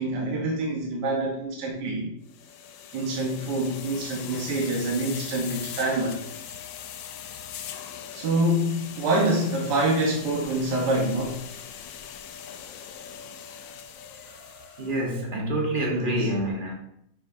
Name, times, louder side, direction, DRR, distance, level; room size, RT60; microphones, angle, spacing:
voice 1, 0.0-2.1 2.9-6.2 8.1-11.4 14.2-14.9 15.9-16.3, right 1 dB, 70° right, 1.7 m, -26 dB
sound 1, 2.3-15.0, left 9 dB, 85° left, 1.3 m, -41 dB
voice 2, 14.8-16.7, right 1 dB, 30° right, 1.4 m, -27 dB
8.9 x 6.1 x 2.7 m
omnidirectional pair, 1.9 m